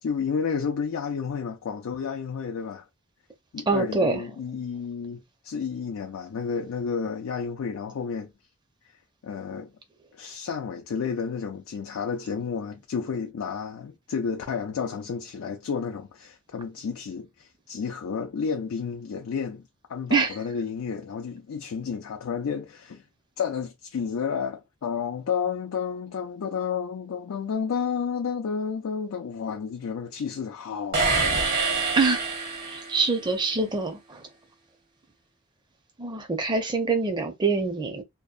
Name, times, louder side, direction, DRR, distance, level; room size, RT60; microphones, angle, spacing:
voice 1, 0.0-2.8 3.5-8.3 9.2-9.7 10.1-23.0 23.4-31.4, left 6 dB, 85° left, 0.4 m, -31 dB
voice 2, 3.7-4.2 20.1-20.3 32.0-32.2 32.7-34.2 36.0-38.0, right 4 dB, 20° right, 0.5 m, -25 dB
sound 1, 30.9-33.2, right 3 dB, 50° right, 0.8 m, -26 dB
2.7 x 2.0 x 2.4 m
head